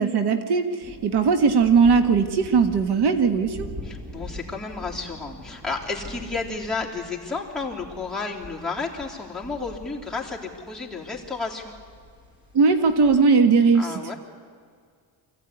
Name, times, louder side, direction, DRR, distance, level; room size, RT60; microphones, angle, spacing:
voice 1, 0.0-3.7 12.5-13.9, right 5 dB, 65° right, 8 dB, 1.5 m, -19 dB
sound 1, 0.8-13.2, left 1 dB, 25° right, 6.9 m, -43 dB
voice 2, 3.8-11.8 13.7-14.2, left 4 dB, ahead, -4 dB, 3.4 m, -32 dB
24.5 x 15.5 x 9.8 m, 2.1 s
cardioid pair, 135°, 43 cm